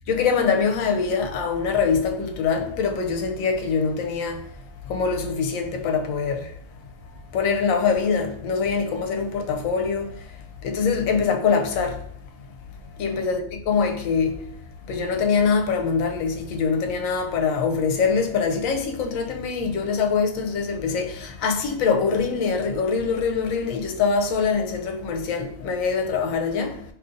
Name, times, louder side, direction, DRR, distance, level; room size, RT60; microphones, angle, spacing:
voice 1, 0.1-4.4 4.9-6.5 7.3-10.2 10.6-12.0 13.0-14.4 14.9-26.8, left 5 dB, 80° left, 0.9 m, -24 dB
3.6 x 2.7 x 2.6 m
omnidirectional pair, 1.4 m